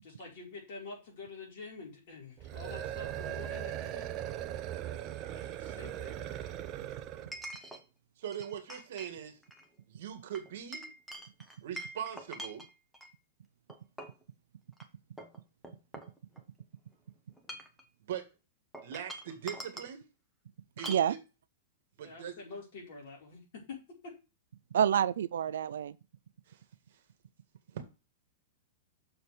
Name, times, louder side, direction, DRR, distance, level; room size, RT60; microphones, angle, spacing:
voice 1, 0.0-4.1 5.3-6.3 20.9-21.0 22.0-23.8 24.0-24.1, left 3 dB, 50° left, 4.7 m, -47 dB
sound 1, 2.4-7.4, right 11 dB, 25° right, 0.7 m, -39 dB
Chink clink, 3.8-3.9 7.3-7.8 8.3-9.1 9.4-9.7 10.3-13.1 13.7-14.2 14.7-14.8 15.2-16.6 17.3-17.8 18.7-19.9 20.8-21.1, right 1 dB, ahead, 1.0 m, -45 dB
voice 2, 8.2-9.3 9.9-10.9 11.6-12.7 18.0-18.3 18.8-20.1 20.8-21.2 22.0-22.4 26.5-26.6 27.7-27.8, right 9 dB, 60° right, 1.8 m, -41 dB
voice 3, 24.7-26.0, right 9 dB, 85° right, 0.5 m, -28 dB
6.7 x 4.4 x 6.4 m
supercardioid pair, 165°, 0 cm